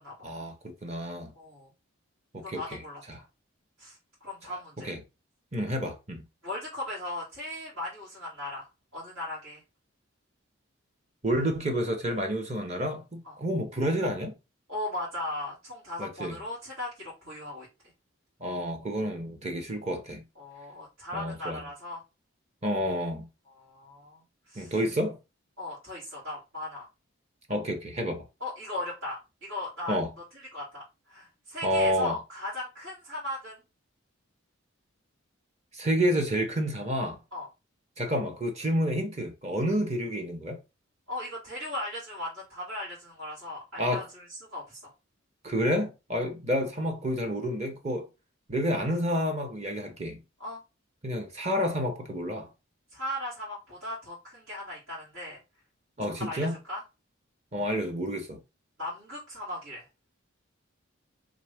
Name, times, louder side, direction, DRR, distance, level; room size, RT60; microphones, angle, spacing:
voice 1, 0.2-1.3 2.3-2.8 3.1-3.2 4.8-5.0 5.5-6.2 11.2-14.4 16.0-16.4 18.4-20.2 21.1-21.6 22.6-23.3 24.6-25.2 27.5-28.3 29.9-30.1 31.6-32.2 35.7-37.2 38.0-40.6 43.8-44.1 45.4-48.1 48.5-50.2 51.0-52.5 56.0-56.6 57.5-58.4, equal, 30° right, 0.8 m, -29 dB
voice 2, 1.3-1.7 2.4-3.0 3.8-4.9 6.4-8.7 8.9-9.6 13.2-13.4 14.7-17.7 20.4-22.0 23.5-24.7 25.6-26.9 28.4-30.0 30.5-33.6 37.3-37.5 41.1-44.9 46.1-46.3 50.4-50.6 52.9-55.4 56.0-56.8 58.8-59.9, left 1 dB, 85° right, 2.5 m, -38 dB
3.9 x 3.0 x 3.4 m
head